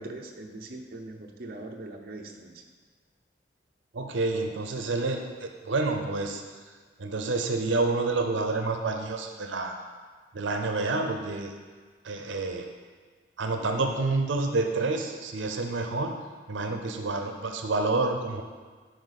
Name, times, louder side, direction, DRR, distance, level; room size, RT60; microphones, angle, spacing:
voice 1, 0.0-2.6, right 2 dB, 50° right, 1 dB, 0.7 m, -41 dB
voice 2, 3.9-6.4 7.0-9.8 10.3-11.5 12.0-12.7 13.4-16.1 16.5-18.4, right 3 dB, 85° right, 5 dB, 0.6 m, -28 dB
10.0 x 4.4 x 4.1 m, 1.5 s
head